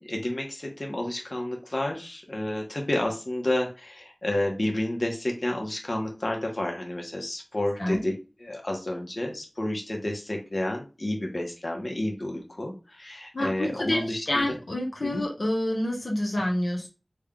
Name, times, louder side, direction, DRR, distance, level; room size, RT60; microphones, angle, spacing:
voice 1, 0.0-8.1 8.4-14.6 15.0-15.2, left 1 dB, 50° left, 1 dB, 0.9 m, -30 dB
voice 2, 13.3-16.9, left 1 dB, 80° left, -1 dB, 0.9 m, -28 dB
3.5 x 2.2 x 3.6 m, 0.31 s
wide cardioid pair, 45°, 0 cm